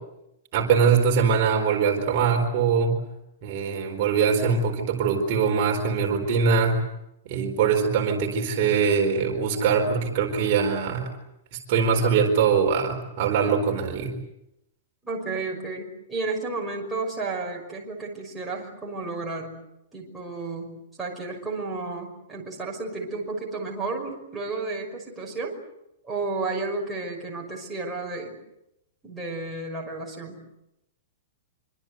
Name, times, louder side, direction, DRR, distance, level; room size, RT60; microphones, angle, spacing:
voice 1, 0.5-3.0 3.4-6.8 7.3-11.1 11.5-14.1, right 6 dB, 40° right, 2 dB, 4.3 m, -22 dB
voice 2, 15.0-19.6 19.9-25.6 26.0-28.3 29.0-30.4, right 3 dB, 5° right, -4 dB, 5.8 m, -32 dB
26.5 x 25.0 x 8.1 m, 0.85 s
supercardioid pair, 170°, 0 cm